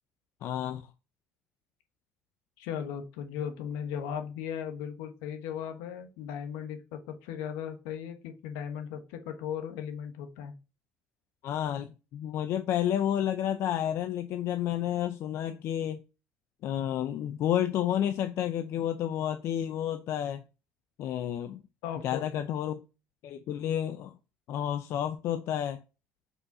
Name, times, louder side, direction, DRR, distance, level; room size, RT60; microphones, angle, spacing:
voice 1, 0.4-0.9 11.4-16.0 16.6-20.4 21.0-21.6 22.0-22.8 23.2-24.2 24.5-25.8, left 10 dB, 65° left, 0.6 m, -30 dB
voice 2, 2.6-10.5 21.8-22.4, left 8 dB, 85° left, 1.2 m, -37 dB
5.6 x 4.2 x 5.3 m
supercardioid pair, 90°, 5 cm